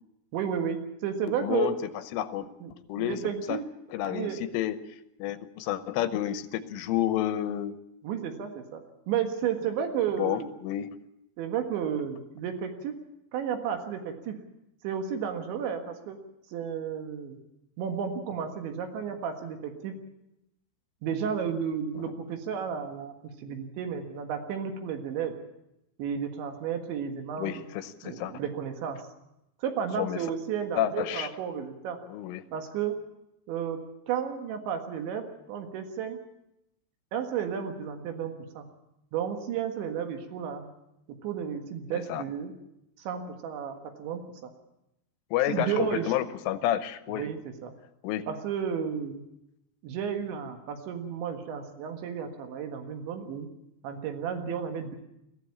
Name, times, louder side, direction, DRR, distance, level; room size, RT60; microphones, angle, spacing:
voice 1, 0.3-1.7 2.6-2.7 3.0-3.6 4.1-4.4 8.0-10.6 11.4-13.0 13.3-14.4 14.8-16.2 16.5-17.4 17.8-20.0 21.0-23.1 23.4-25.3 26.0-27.6 28.0-29.0 29.6-32.0 32.5-33.0 33.5-33.8 34.1-36.2 37.1-38.7 39.1-40.7 41.2-42.5 43.0-44.5 45.5-46.1 47.1-47.7 48.3-49.2 49.8-53.5 53.8-55.0, right 8 dB, 70° right, 5 dB, 3.8 m, -32 dB
voice 2, 1.4-1.8 2.1-3.6 3.9-4.8 5.2-7.8 10.2-11.0 27.4-28.3 30.0-30.2 30.8-31.3 32.1-32.4 41.9-42.2 45.3-47.3 48.0-48.2, left 12 dB, 85° left, 12 dB, 3.4 m, -30 dB
21.0 x 15.5 x 8.5 m, 0.86 s
omnidirectional pair, 5.7 m